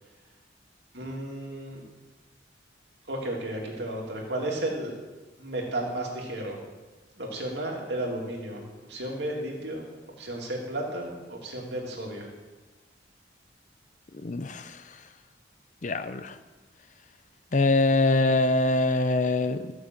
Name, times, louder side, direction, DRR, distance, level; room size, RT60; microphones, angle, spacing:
voice 1, 0.9-1.8 3.1-5.0 5.4-6.6 7.2-8.6 8.9-9.9 10.2-12.3, right 1 dB, 65° right, -1 dB, 2.7 m, -33 dB
voice 2, 14.2-14.8 15.8-16.4 17.5-19.7, left 2 dB, 40° left, 11 dB, 0.6 m, -24 dB
14.5 x 6.2 x 7.7 m, 1.2 s
head